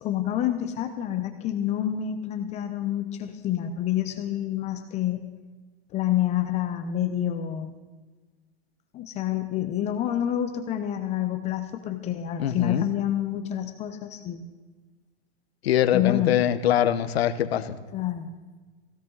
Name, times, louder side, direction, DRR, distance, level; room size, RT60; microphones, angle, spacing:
voice 1, 0.0-5.2 5.9-7.7 8.9-14.4 15.9-16.4 17.9-18.3, left 11 dB, 20° left, 7 dB, 0.8 m, -28 dB
voice 2, 12.4-12.9 15.6-17.8, left 10 dB, 75° left, 11 dB, 1.2 m, -23 dB
16.5 x 16.5 x 4.0 m, 1.3 s
supercardioid pair, 155°, 31 cm